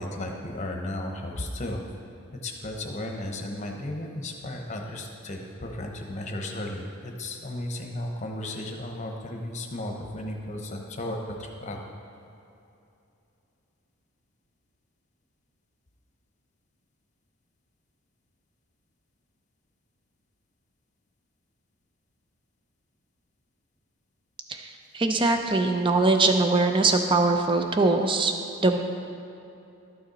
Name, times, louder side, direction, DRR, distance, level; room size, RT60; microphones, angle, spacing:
voice 1, 0.0-1.8 2.4-11.8, left 1 dB, 35° left, 2 dB, 0.9 m, -34 dB
voice 2, 24.5-28.3 28.6-28.8, right 3 dB, 25° right, 5 dB, 0.6 m, -22 dB
12.0 x 6.5 x 4.2 m, 2.8 s
head